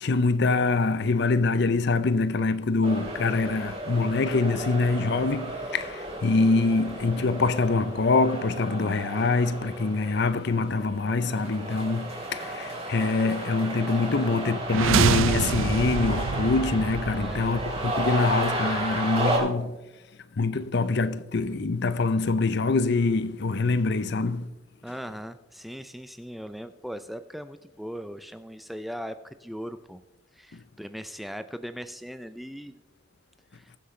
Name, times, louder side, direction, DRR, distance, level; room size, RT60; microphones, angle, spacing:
voice 1, 0.0-19.8 20.3-24.5 30.5-30.6, left 3 dB, 55° left, 0.6 m, -25 dB
sound 1, 2.8-19.4, right 1 dB, 30° right, 3.2 m, -33 dB
sound 2, 14.6-18.6, right 7 dB, 75° right, 0.4 m, -27 dB
voice 2, 17.2-17.6 24.8-30.0 30.3-32.8 33.5-33.7, equal, ahead, 0.3 m, -39 dB
21.0 x 7.7 x 3.2 m
head